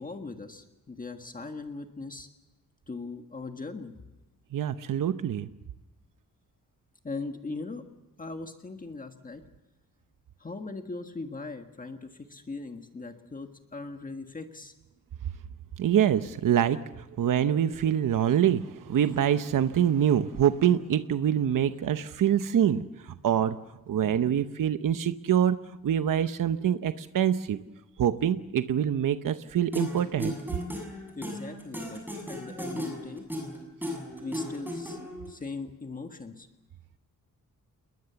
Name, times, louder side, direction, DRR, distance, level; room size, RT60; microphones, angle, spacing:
voice 1, 0.0-2.3 2.9-4.1 7.0-7.8 8.2-9.4 10.4-14.7 31.2-32.0 32.3-33.2 34.2-36.5, left 3 dB, 25° left, 5 dB, 1.6 m, -39 dB
voice 2, 4.5-5.5 15.8-23.6 23.9-25.6 25.8-27.6 28.0-30.3 33.9-34.0, right 9 dB, 70° right, 10 dB, 0.9 m, -25 dB
sound 1, 29.7-35.3, left 1 dB, 5° right, 7.2 m, -35 dB
29.0 x 21.5 x 7.0 m, 1.1 s
wide cardioid pair, 175°, 34 cm